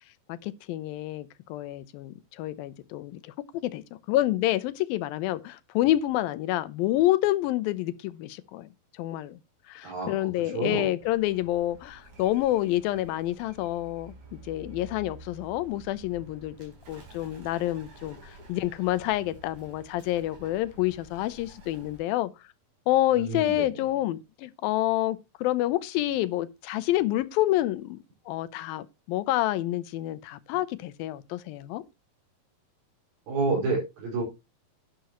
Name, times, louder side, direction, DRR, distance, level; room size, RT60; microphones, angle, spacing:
voice 1, 0.3-3.3 3.6-8.7 9.0-9.4 9.7-22.3 22.9-28.0 28.3-31.8, left 15 dB, 80° left, 2.5 m, -28 dB
voice 2, 9.8-10.9 23.1-23.7 33.3-34.2, right 3 dB, 85° right, 6.8 m, -29 dB
Bird, 11.0-22.0, right 2 dB, 55° right, 5.3 m, -50 dB
11.5 x 10.5 x 3.0 m
omnidirectional pair, 4.2 m